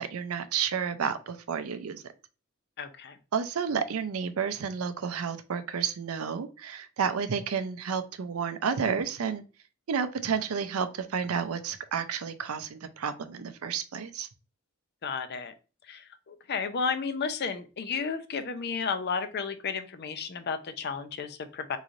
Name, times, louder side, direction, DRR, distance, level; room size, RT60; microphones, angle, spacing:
voice 1, 0.0-2.0 3.3-9.4 9.9-14.3, right 6 dB, 90° right, 11 dB, 0.5 m, -31 dB
voice 2, 2.8-3.2 15.0-15.5 15.9-21.8, left 5 dB, 50° left, 10 dB, 0.5 m, -33 dB
3.8 x 3.1 x 2.5 m, 0.33 s
head